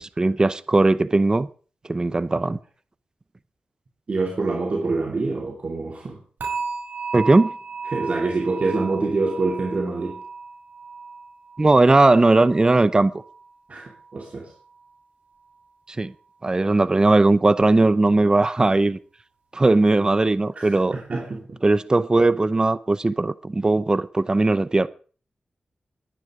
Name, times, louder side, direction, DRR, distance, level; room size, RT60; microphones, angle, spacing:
voice 1, 0.0-1.5 1.9-2.6 7.1-7.5 11.6-13.1 16.0-16.1 16.4-19.0 19.5-21.0 21.6-24.9, right 2 dB, 25° right, 0.7 m, -18 dB
voice 2, 4.1-6.2 7.9-10.2 13.7-14.5 20.6-21.6, right 3 dB, 50° right, 2.8 m, -26 dB
sound 1, 6.4-13.5 13.8-14.2 14.7-14.8, right 4 dB, 85° right, 6.0 m, -35 dB
21.5 x 9.7 x 5.0 m
wide cardioid pair, 90°, 3 cm